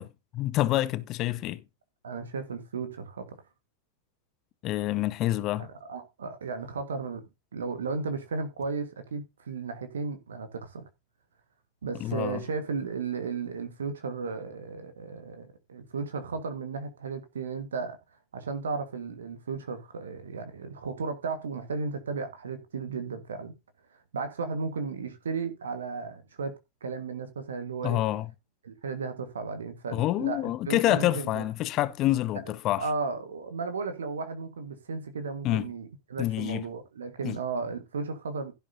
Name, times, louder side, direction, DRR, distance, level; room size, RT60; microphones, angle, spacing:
voice 1, 0.0-1.6 4.6-5.7 11.9-12.4 27.8-28.3 29.9-32.8 35.4-35.7 36.2-36.6 37.2-37.4, left 15 dB, 35° left, 0.9 m, -27 dB
voice 2, 2.0-3.4 5.6-7.2 7.5-10.8 11.8-18.0 18.3-23.5 24.1-28.0 28.6-31.4 32.8-38.5, right 4 dB, 65° right, 1.7 m, -34 dB
16.0 x 7.1 x 2.8 m
figure-of-eight pair, 90°, 0 cm